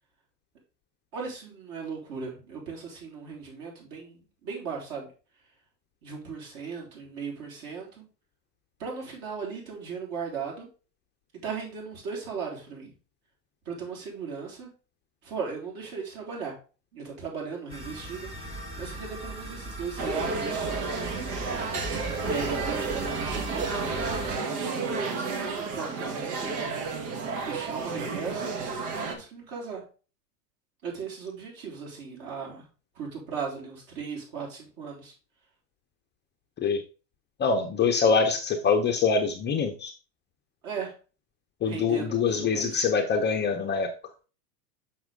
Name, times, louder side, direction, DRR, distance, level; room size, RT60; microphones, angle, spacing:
voice 1, 1.1-5.1 6.0-8.1 8.8-10.7 11.4-13.0 13.7-14.7 15.2-16.5 16.9-18.3 18.8-21.0 22.3-23.9 24.4-26.6 27.4-28.5 28.9-29.8 30.8-32.7 32.9-35.1 40.6-40.9 41.6-42.8, right 5 dB, 50° right, -1 dB, 4.0 m, -37 dB
sound 1, 17.7-24.4, right 1 dB, 10° right, 1.8 m, -38 dB
sound 2, 20.0-29.1, right 4 dB, 65° right, 1.7 m, -31 dB
voice 2, 37.4-39.9 41.6-43.9, left 5 dB, 20° left, 4 dB, 0.6 m, -24 dB
6.2 x 6.0 x 3.6 m, 0.35 s
hypercardioid pair, 115°, 50 cm